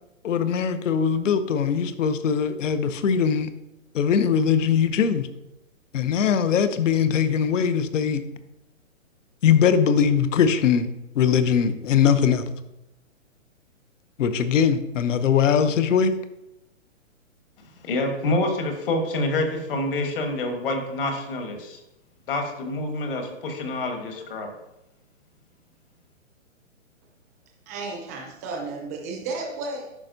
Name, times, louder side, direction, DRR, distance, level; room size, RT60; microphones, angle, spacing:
voice 1, 0.2-3.5 3.9-5.3 5.9-8.2 9.4-10.9 11.1-12.5 14.2-16.1, left 7 dB, 70° left, 11 dB, 0.7 m, -21 dB
voice 2, 17.6-21.8 22.3-24.5, left 2 dB, 45° left, 5 dB, 1.3 m, -27 dB
voice 3, 27.7-29.9, right 3 dB, 15° right, 0 dB, 0.6 m, -33 dB
11.0 x 4.3 x 2.6 m, 0.90 s
hypercardioid pair, 160°, 40 cm